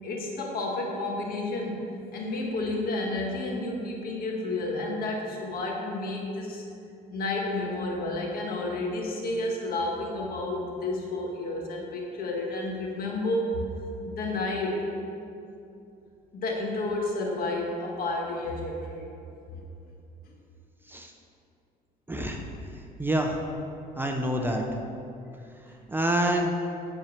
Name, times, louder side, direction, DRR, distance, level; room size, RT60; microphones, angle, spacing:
voice 1, 0.0-6.6 7.1-13.6 14.0-14.9 16.3-19.1 19.5-19.6, left 2 dB, 60° left, -1 dB, 1.8 m, -31 dB
voice 2, 22.1-22.4 23.0-23.4 24.0-24.6 25.9-26.5, right 1 dB, 10° right, 2 dB, 0.7 m, -26 dB
10.0 x 4.4 x 6.5 m, 2.6 s
cardioid pair, 110°, 17 cm